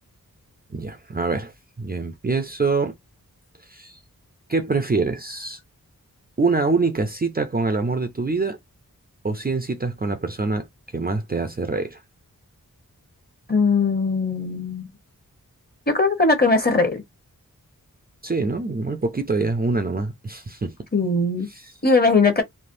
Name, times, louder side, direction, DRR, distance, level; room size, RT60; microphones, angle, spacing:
voice 1, 0.7-2.9 3.7-4.0 4.5-5.6 6.4-8.6 9.2-10.7 10.9-12.0 18.2-20.7 21.5-21.7, right 3 dB, 25° right, 0.5 m, -25 dB
voice 2, 13.5-14.9 15.9-17.0 20.9-21.5 21.8-22.4, left 3 dB, 30° left, 1.1 m, -19 dB
3.3 x 2.1 x 2.6 m
wide cardioid pair, 90°, 34 cm